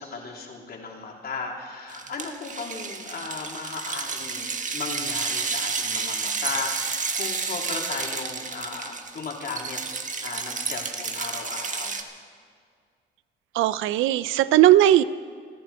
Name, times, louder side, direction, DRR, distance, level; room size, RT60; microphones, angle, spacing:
voice 1, 0.0-9.8 10.2-11.9, left 4 dB, 50° left, -1 dB, 3.5 m, -35 dB
sound 1, 1.9-12.0, right 5 dB, 40° right, 1.5 m, -31 dB
voice 2, 13.6-15.0, right 13 dB, 90° right, 16 dB, 0.6 m, -18 dB
29.5 x 11.0 x 4.4 m, 2.1 s
cardioid pair, 90°, 20 cm